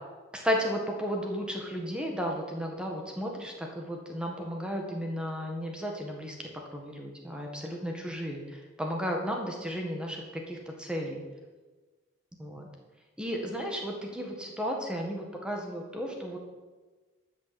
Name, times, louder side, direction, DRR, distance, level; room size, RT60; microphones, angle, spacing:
voice 1, 0.3-6.3 6.7-11.2 12.4-12.7 13.2-16.4, equal, 5° right, 1 dB, 1.8 m, -34 dB
12.5 x 6.6 x 7.8 m, 1.3 s
head